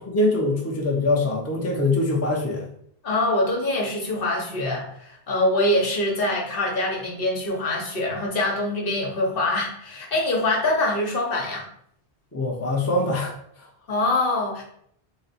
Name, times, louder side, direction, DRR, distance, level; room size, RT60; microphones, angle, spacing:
voice 1, 0.0-2.7 12.3-13.7, left 2 dB, 15° left, -2 dB, 0.6 m, -23 dB
voice 2, 3.0-11.6 13.9-14.6, left 2 dB, 60° left, -1 dB, 1.1 m, -24 dB
4.0 x 2.1 x 4.1 m, 0.67 s
omnidirectional pair, 1.0 m